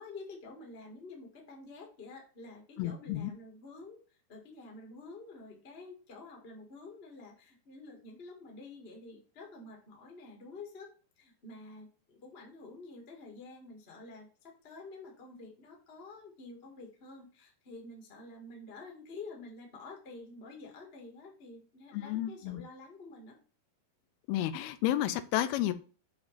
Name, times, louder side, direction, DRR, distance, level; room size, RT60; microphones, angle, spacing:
voice 1, 0.0-10.9 11.2-23.3, left 3 dB, 45° left, 1 dB, 0.7 m, -49 dB
voice 2, 2.8-3.3 21.9-22.6 24.3-25.7, left 13 dB, 90° left, 12 dB, 2.5 m, -31 dB
7.0 x 3.0 x 5.6 m, 0.38 s
omnidirectional pair, 4.3 m